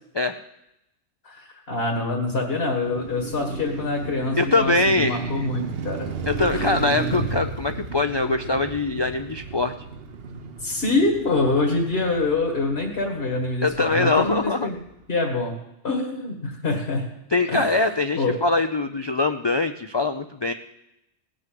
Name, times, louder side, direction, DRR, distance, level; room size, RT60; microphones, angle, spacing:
voice 1, 1.2-6.1 6.5-6.8 7.1-7.3 10.6-14.8 15.1-15.6 15.8-17.1 17.5-17.8 18.2-18.3, left 3 dB, 60° left, 2 dB, 2.1 m, -25 dB
Car passing by, 2.6-14.8, right 5 dB, 60° right, 1.1 m, -34 dB
voice 2, 4.4-5.5 6.3-9.7 13.6-14.7 17.3-20.5, left 3 dB, 35° left, 8 dB, 0.4 m, -23 dB
17.5 x 6.2 x 7.7 m, 0.86 s
omnidirectional pair, 1.2 m